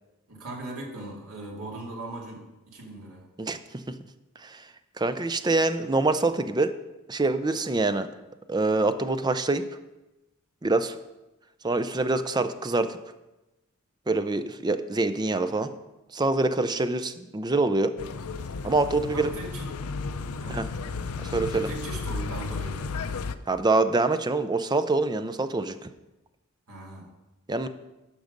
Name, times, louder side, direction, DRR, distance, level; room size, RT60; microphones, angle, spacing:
voice 1, 0.3-3.3 19.1-19.7 20.4-20.6 21.6-23.0 26.7-27.1, right 2 dB, 75° right, -2 dB, 2.6 m, -39 dB
voice 2, 3.4-4.0 4.4-4.7 5.0-6.7 7.1-8.1 8.5-9.7 10.6-11.0 11.6-13.0 14.1-15.7 16.1-17.9 18.6-19.3 20.5-20.7 21.2-21.7 23.5-25.9 27.5-27.7, right 2 dB, 20° right, 10 dB, 0.5 m, -25 dB
sound 1, 18.0-23.3, left 4 dB, 75° left, 0.5 m, -33 dB
11.5 x 6.1 x 5.2 m, 1.0 s
head